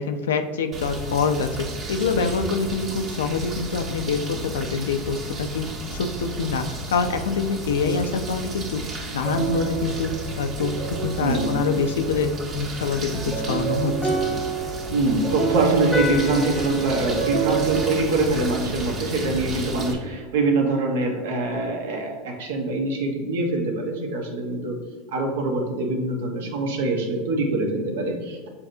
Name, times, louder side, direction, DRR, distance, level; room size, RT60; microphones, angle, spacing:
voice 1, 0.0-10.1 10.4-14.2, left 5 dB, 85° left, 7 dB, 0.4 m, -26 dB
sound 1, 0.7-19.9, right 1 dB, 50° right, 1.2 m, -33 dB
sound 2, 9.2-12.4 13.1-18.8, right 4 dB, 10° right, 1.0 m, -28 dB
voice 2, 11.2-11.5 14.9-24.8 25.1-28.5, right 2 dB, 80° right, 2 dB, 0.9 m, -24 dB
6.9 x 2.7 x 2.6 m, 1.5 s
hypercardioid pair, 95°, 0 cm